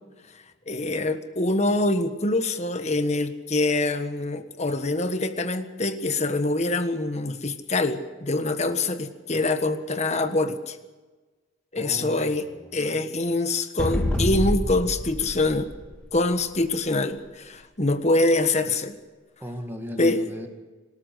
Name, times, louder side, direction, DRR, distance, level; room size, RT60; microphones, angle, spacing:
voice 1, 0.7-10.8 11.7-12.5 12.7-15.7 16.1-18.9 20.0-20.2, left 2 dB, 35° left, 9 dB, 1.4 m, -25 dB
voice 2, 11.8-13.0 19.4-20.5, equal, 10° right, 3 dB, 2.0 m, -37 dB
sound 1, 13.8-16.5, left 1 dB, 5° left, 3.2 m, -27 dB
25.5 x 13.0 x 8.3 m, 1.3 s
head